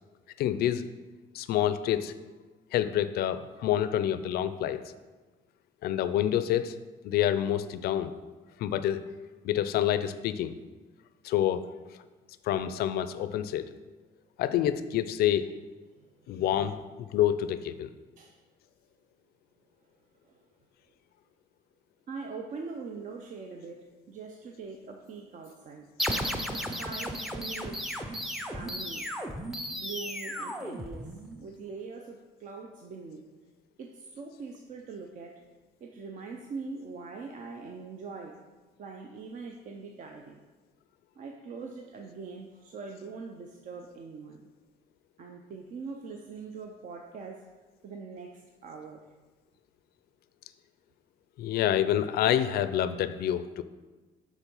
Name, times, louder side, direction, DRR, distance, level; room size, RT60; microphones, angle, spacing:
voice 1, 0.4-0.8 1.3-2.1 2.7-4.8 5.8-6.8 7.0-8.1 8.6-9.0 9.4-10.6 11.2-11.6 12.4-13.7 14.4-15.5 16.3-17.9 51.4-53.6, left 11 dB, 65° left, 13 dB, 0.4 m, -27 dB
voice 2, 16.0-16.4 18.2-18.4 20.2-20.4 22.1-25.9 26.5-28.0 28.5-29.0 29.7-33.2 33.8-35.4 35.8-38.4 38.8-40.4 41.2-44.5 45.2-47.4 47.8-49.0, right 4 dB, 50° right, 3 dB, 0.6 m, -42 dB
sound 1, 26.0-31.4, equal, ahead, 0.5 m, -34 dB
7.3 x 3.6 x 5.4 m, 1.3 s
cardioid pair, 110°, 17 cm